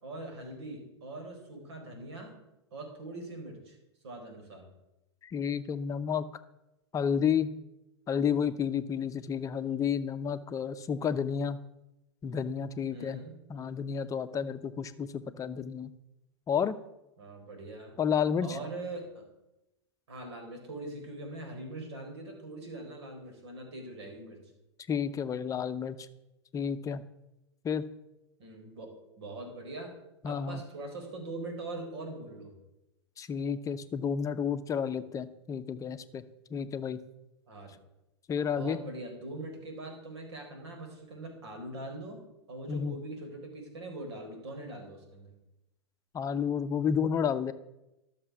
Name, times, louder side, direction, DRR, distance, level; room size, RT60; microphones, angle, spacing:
voice 1, 0.0-2.3 2.7-3.8 4.0-4.7 12.9-13.3 17.2-17.9 18.4-19.2 20.1-24.4 28.4-28.9 29.2-29.9 30.2-32.6 37.5-37.8 38.5-42.2 42.5-45.3, right 2 dB, 70° right, 3 dB, 4.3 m, -42 dB
voice 2, 5.2-6.3 6.9-7.5 8.1-11.6 12.2-13.2 13.5-15.9 16.5-16.8 18.0-18.6 24.9-26.1 26.5-27.0 27.6-27.8 30.2-30.6 33.2-36.2 36.5-37.0 38.3-38.8 42.7-43.0 46.1-47.5, left 7 dB, 25° left, 12 dB, 0.8 m, -31 dB
12.5 x 6.8 x 6.2 m, 0.92 s
hypercardioid pair, 105°, 15 cm